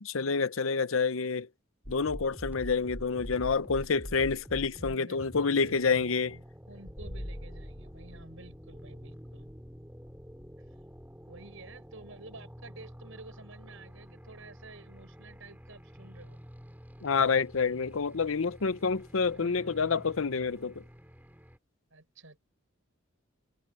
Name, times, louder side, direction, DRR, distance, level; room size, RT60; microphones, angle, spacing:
voice 1, 0.0-1.5 1.9-6.3 17.0-20.8, left 5 dB, 70° left, 0.7 m, -28 dB
sound 1, 1.8-21.6, equal, 10° right, 3.5 m, -47 dB
voice 2, 4.7-9.5 11.3-16.4 19.3-20.0 21.9-22.4, right 2 dB, 70° right, 5.9 m, -51 dB
sound 2, 6.9-12.4, equal, 35° left, 4.1 m, -47 dB
head